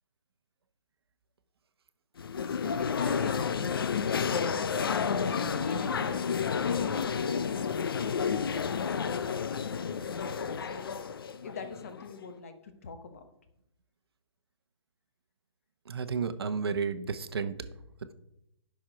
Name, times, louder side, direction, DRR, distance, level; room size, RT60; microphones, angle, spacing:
sound 1, 2.2-12.2, left 6 dB, 50° left, 0.5 m, -31 dB
voice 1, 2.5-3.6 4.9-6.4 6.7-8.3 8.5-10.9 11.4-13.3, left 4 dB, 30° left, 8 dB, 0.9 m, -42 dB
voice 2, 15.9-17.5, right 5 dB, 55° right, 11 dB, 0.9 m, -32 dB
10.5 x 6.2 x 5.0 m, 0.80 s
hypercardioid pair, 180°, 15 cm